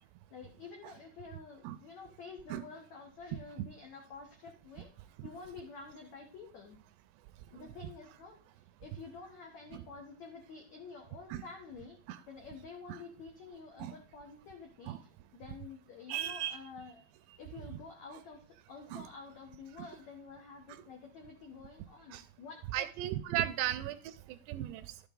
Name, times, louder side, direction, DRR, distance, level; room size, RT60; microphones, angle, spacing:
voice 1, 0.3-4.9 5.2-6.8 7.5-8.4 8.8-12.0 12.3-17.0 17.4-22.9 23.6-23.7, left 4 dB, 75° left, 2 dB, 1.6 m, -49 dB
voice 2, 16.1-16.6 18.9-19.0 22.1-22.2 22.7-24.0 24.5-24.8, right 12 dB, 80° right, 12 dB, 2.6 m, -35 dB
12.0 x 7.9 x 3.8 m, 0.43 s
omnidirectional pair, 5.2 m